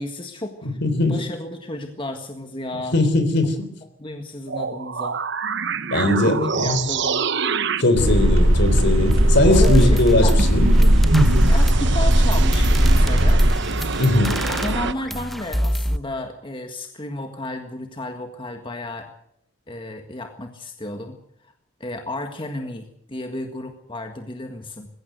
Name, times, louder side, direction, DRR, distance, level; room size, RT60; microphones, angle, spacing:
voice 1, 0.0-0.8 1.1-3.0 4.0-5.2 6.3-7.3 9.4-10.4 11.5-13.4 14.4-19.1 19.7-21.2 21.4-21.5 21.8-24.9, left 1 dB, 25° left, 5 dB, 1.7 m, -32 dB
voice 2, 0.6-1.2 2.9-3.7 5.9-6.8 7.8-10.7 11.1-11.5 14.0-14.5, left 2 dB, 60° left, 10 dB, 3.6 m, -20 dB
sound 1, 4.5-14.9, right 4 dB, 60° right, 1.0 m, -27 dB
sound 2, 8.0-13.5, right 1 dB, 80° right, 2.2 m, -17 dB
sound 3, 9.1-9.2 9.5-16.0, equal, ahead, 0.8 m, -26 dB
21.5 x 16.5 x 8.0 m, 0.73 s
head